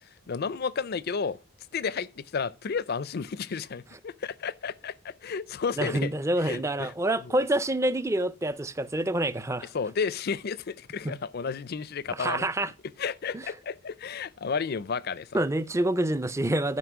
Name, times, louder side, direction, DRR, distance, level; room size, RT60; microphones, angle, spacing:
voice 1, 0.3-1.4 1.7-6.1 6.4-6.9 7.2-7.3 9.7-12.5 13.0-15.4, left 5 dB, 45° left, 0.5 m, -32 dB
voice 2, 5.8-9.7 11.0-11.1 12.1-12.7 13.3-13.4 15.3-16.8, right 1 dB, 15° right, 0.4 m, -27 dB
11.5 x 5.1 x 6.0 m
head